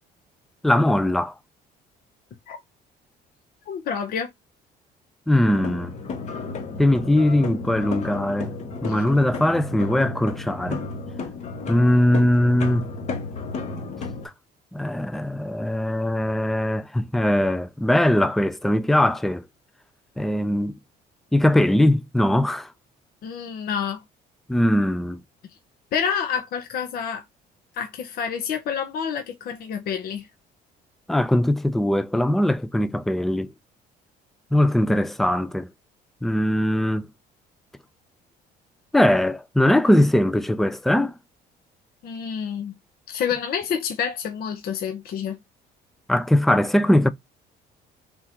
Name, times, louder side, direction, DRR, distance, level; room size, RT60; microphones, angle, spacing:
voice 1, 0.6-1.3 5.3-5.9 6.8-8.5 8.8-10.8 11.7-12.9 14.7-19.4 20.2-20.8 21.3-22.7 24.5-25.2 31.1-33.5 34.5-35.7 36.2-37.1 38.9-41.1 46.1-47.1, left 1 dB, ahead, 0.3 m, -20 dB
voice 2, 3.7-4.3 23.2-24.0 25.9-27.2 27.7-30.3 42.0-42.7 43.1-45.4, left 7 dB, 65° left, 0.8 m, -28 dB
sound 1, 5.4-14.3, left 4 dB, 45° left, 1.0 m, -33 dB
3.7 x 2.6 x 4.3 m
cardioid pair, 110°, 17 cm